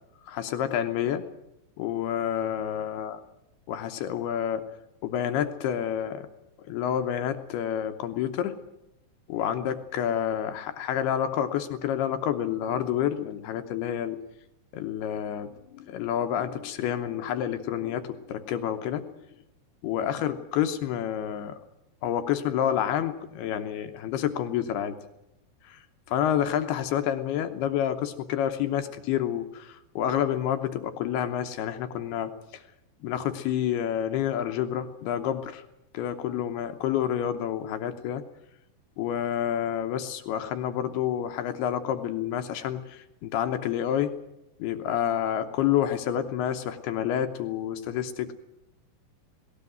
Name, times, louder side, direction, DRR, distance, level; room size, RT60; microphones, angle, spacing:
voice 1, 0.3-1.3 1.8-3.2 3.7-4.7 5.0-6.3 6.7-8.6 9.3-14.2 14.7-19.1 19.8-21.6 22.0-25.0 25.6-32.6 33.0-35.6 35.9-38.2 39.0-44.2 44.6-48.3, left 10 dB, 80° left, 8 dB, 2.9 m, -29 dB
19.0 x 18.0 x 9.2 m, 0.86 s
omnidirectional pair, 4.6 m